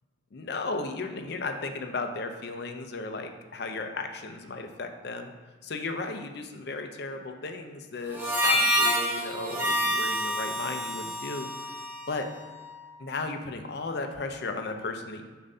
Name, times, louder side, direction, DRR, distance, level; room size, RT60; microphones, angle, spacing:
voice 1, 0.3-5.3 5.6-11.5 12.1-12.3 13.0-15.2, left 3 dB, 55° left, 5 dB, 0.5 m, -35 dB
Harmonica, 8.1-12.7, equal, 10° right, 0.8 m, -28 dB
6.8 x 2.6 x 5.4 m, 1.4 s
head